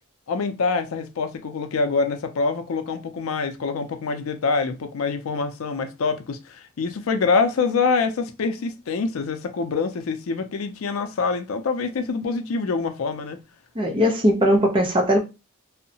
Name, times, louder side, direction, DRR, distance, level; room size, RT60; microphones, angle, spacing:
voice 1, 0.3-13.4, left 4 dB, 90° left, 0.4 m, -25 dB
voice 2, 13.8-15.2, equal, 25° right, 0.5 m, -19 dB
2.7 x 2.0 x 2.7 m
head